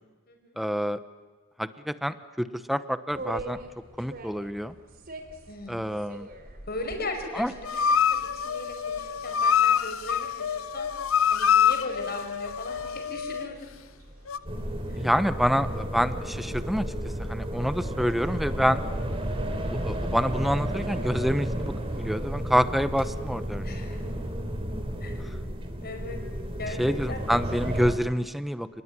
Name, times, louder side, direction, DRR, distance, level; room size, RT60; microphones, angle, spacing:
voice 1, 0.6-1.0 1.6-3.6 4.0-4.7 5.7-6.3 7.3-7.5 15.0-16.8 17.2-18.8 19.7-23.9 26.8-28.7, equal, ahead, 12 dB, 0.9 m, -27 dB
sound 1, 3.1-22.6, right 1 dB, 45° right, 3.4 m, -47 dB
voice 2, 5.5-6.0 6.7-10.9 11.3-13.7 14.9-15.0 23.6-24.0 25.0-25.2 25.8-26.2 26.5-26.8 27.1-27.4, left 2 dB, 50° left, 4 dB, 5.7 m, -38 dB
sound 2, 7.6-13.5 14.3-14.4, left 8 dB, 70° left, 0.8 m, -25 dB
sound 3, 14.4-27.9, equal, 25° right, 3.3 m, -32 dB
29.5 x 20.5 x 9.8 m, 1.3 s
head